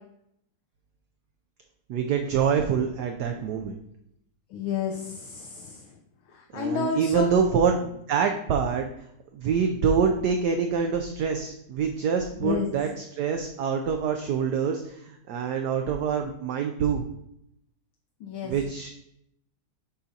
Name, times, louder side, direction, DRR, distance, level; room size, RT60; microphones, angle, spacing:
voice 1, 1.9-3.7 6.5-8.9 9.3-17.0 18.4-18.9, right 6 dB, 80° right, 4 dB, 0.9 m, -25 dB
voice 2, 4.5-5.9 6.3-7.3 12.4-12.7 18.2-18.5, left 6 dB, 75° left, 1 dB, 1.5 m, -30 dB
8.1 x 2.8 x 5.0 m, 0.76 s
omnidirectional pair, 2.3 m